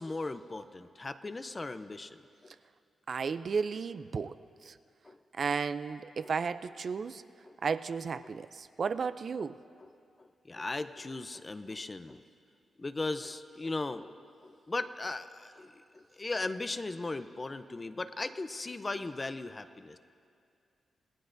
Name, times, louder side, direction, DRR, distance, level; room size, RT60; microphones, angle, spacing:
voice 1, 0.0-2.5 5.0-5.2 7.4-7.6 8.2-8.3 9.4-9.5 9.8-9.9 10.2-12.2 12.8-14.2 14.4-20.0, left 2 dB, 25° left, 12 dB, 0.5 m, -38 dB
voice 2, 3.1-4.4 4.6-4.8 5.3-7.2 7.6-9.6, right 5 dB, 45° right, 13 dB, 0.3 m, -33 dB
27.0 x 19.0 x 2.6 m, 2.4 s
wide cardioid pair, 145°, 0 cm